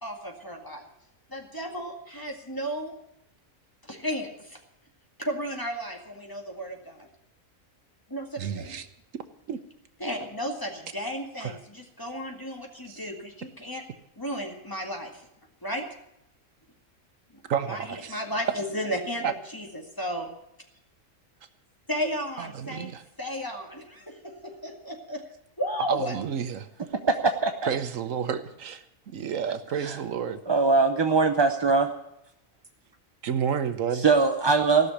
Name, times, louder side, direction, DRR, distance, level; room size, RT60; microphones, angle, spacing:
voice 1, 0.0-0.9 1.3-3.0 3.8-4.6 5.2-7.1 8.1-8.8 10.0-13.8 14.2-15.3 15.6-15.9 17.7-20.3 21.9-22.9 23.2-25.2 25.6-26.2, equal, 15° left, 1 dB, 2.0 m, -34 dB
voice 2, 8.4-8.9 9.5-9.6 11.4-11.5 12.9-13.0 17.5-18.2 19.2-19.3 22.4-23.0 25.9-26.7 27.7-30.4 33.2-34.0, right 7 dB, 75° right, 10 dB, 1.2 m, -30 dB
voice 3, 30.5-31.9 33.9-34.9, right 4 dB, 30° right, 6 dB, 0.5 m, -21 dB
16.5 x 6.6 x 9.9 m, 0.80 s
omnidirectional pair, 1.4 m